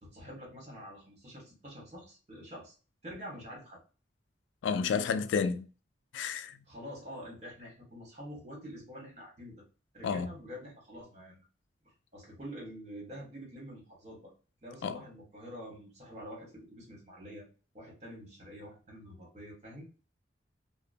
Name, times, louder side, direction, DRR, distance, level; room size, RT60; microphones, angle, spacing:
voice 1, 0.0-2.8 3.0-3.8 6.6-9.6 9.9-11.4 12.1-14.3 14.6-17.5 17.7-19.9, equal, 40° right, 1.3 m, -46 dB
voice 2, 4.6-5.7 6.1-6.6 10.0-10.3 14.8-15.0, left 6 dB, 90° left, 0.3 m, -30 dB
2.8 x 2.0 x 2.5 m
head